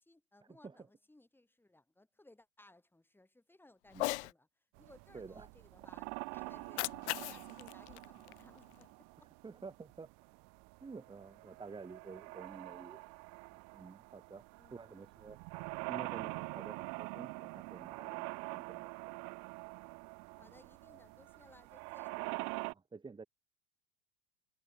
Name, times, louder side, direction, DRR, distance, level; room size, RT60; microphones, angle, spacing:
voice 1, 0.0-6.8 7.1-9.3 12.5-12.6 13.0-13.2 14.6-15.1 20.3-22.2, left 2 dB, 5° left, 7.5 m, -63 dB
Cat, 3.9-4.3 6.5-8.9, left 21 dB, 70° left, 0.8 m, -40 dB
sound 1, 4.8-22.7, right 33 dB, 50° right, 1.0 m, -45 dB
voice 2, 5.1-5.5 9.4-10.1 10.8-13.0 13.5-14.4 14.7-15.4 15.9-18.9 22.7-23.2, right 4 dB, 15° right, 2.3 m, -50 dB
hypercardioid pair, 105°, 35 cm